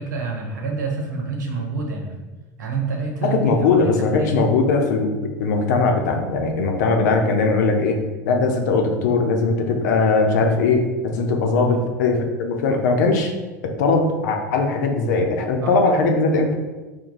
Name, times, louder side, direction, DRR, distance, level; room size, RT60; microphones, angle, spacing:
voice 1, 0.0-2.2 2.6-4.3 11.5-11.8 15.6-15.8, right 4 dB, 85° right, 1 dB, 0.9 m, -28 dB
voice 2, 3.2-13.3 13.6-16.6, left 3 dB, 75° left, 3 dB, 0.6 m, -20 dB
4.5 x 2.2 x 3.8 m, 1.2 s
hypercardioid pair, 85°, 10 cm